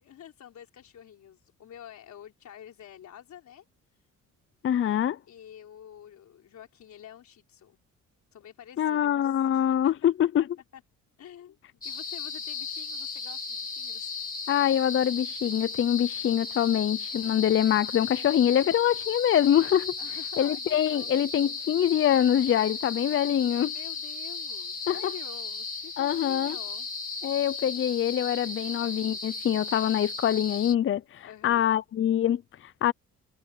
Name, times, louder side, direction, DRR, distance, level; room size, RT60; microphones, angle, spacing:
voice 1, 0.0-3.7 3.9-4.1 5.3-7.8 8.3-10.3 10.7-10.8 11.2-11.6 11.8-14.1 20.0-21.1 23.7-26.9 31.2-31.7, left 10 dB, 65° left, 4.3 m, -48 dB
voice 2, 4.6-5.2 8.8-10.4 14.5-19.9 20.4-23.7 24.9-25.1 26.0-26.6 27.2-32.9, left 10 dB, 45° left, 0.6 m, -24 dB
sound 1, 11.8-30.8, left 4 dB, 30° left, 3.6 m, -36 dB
cardioid pair, 90°, 30 cm